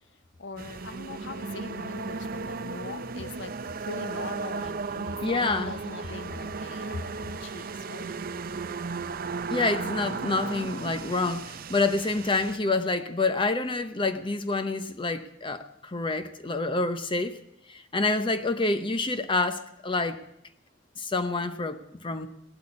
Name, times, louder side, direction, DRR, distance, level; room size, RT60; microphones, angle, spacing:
voice 1, 0.4-3.5 3.8-8.1, left 3 dB, 70° left, 11 dB, 0.9 m, -40 dB
sound 1, 0.6-12.6, right 4 dB, 50° right, 0.6 m, -35 dB
voice 2, 5.2-5.7 9.5-17.4 17.7-20.2 21.0-22.3, left 3 dB, 25° left, 10 dB, 0.8 m, -27 dB
18.0 x 8.3 x 9.7 m, 0.80 s
head